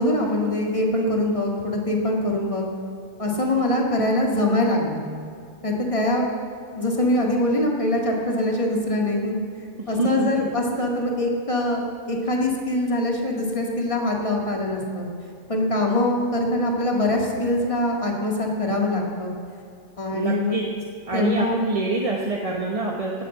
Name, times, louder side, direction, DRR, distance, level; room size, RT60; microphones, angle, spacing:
voice 1, 0.0-2.7 3.2-5.0 5.6-6.3 6.7-11.8 12.1-15.1 15.5-19.3 20.0-20.5 21.1-21.6, left 1 dB, 25° left, 0 dB, 2.2 m, -23 dB
voice 2, 9.8-10.5 20.1-20.6 21.1-23.2, right 3 dB, 25° right, -1 dB, 1.1 m, -26 dB
18.5 x 7.7 x 7.5 m, 2.4 s
omnidirectional pair, 1.4 m